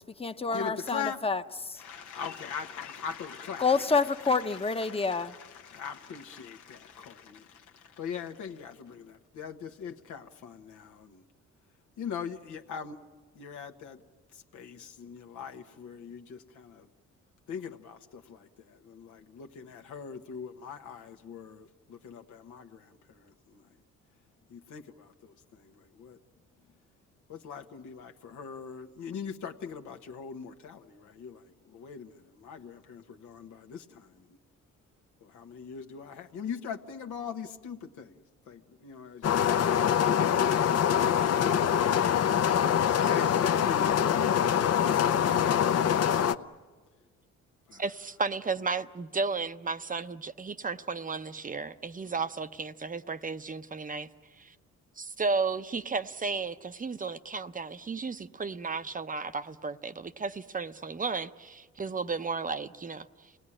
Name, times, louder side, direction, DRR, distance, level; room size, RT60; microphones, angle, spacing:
voice 1, 0.0-1.8 3.6-5.3, left 4 dB, 20° left, 9 dB, 1.0 m, -28 dB
voice 2, 0.5-1.2 1.8-11.2 12.0-13.0 13.3-14.0 14.5-16.9 17.5-23.6 24.5-26.2 27.3-34.1 35.2-40.9 42.9-46.1 47.7-47.8, left 7 dB, 75° left, 4 dB, 1.3 m, -42 dB
sound 1, 39.2-46.3, left 9 dB, 55° left, 0.8 m, -24 dB
voice 3, 47.7-54.1 54.4-54.5 55.0-63.1, right 4 dB, 25° right, 11 dB, 0.7 m, -33 dB
27.0 x 19.0 x 9.9 m, 1.5 s
cardioid pair, 90°, 30 cm